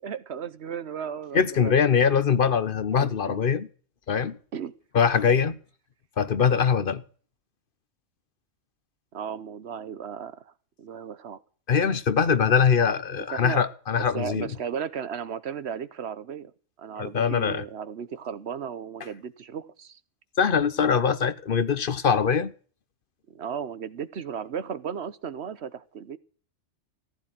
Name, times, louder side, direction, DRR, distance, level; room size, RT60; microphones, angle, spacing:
voice 1, 0.0-1.7 3.0-3.4 4.5-4.7 5.3-5.5 9.1-10.5 10.8-11.4 13.2-13.6 14.0-16.5 16.8-20.0 23.3-26.2, right 7 dB, 60° right, 1.1 m, -35 dB
voice 2, 1.3-3.7 4.1-4.4 4.9-5.6 6.2-7.0 11.7-14.5 17.0-17.6 20.4-22.5, left 6 dB, 50° left, 1.0 m, -22 dB
15.0 x 10.5 x 6.0 m
omnidirectional pair, 1.3 m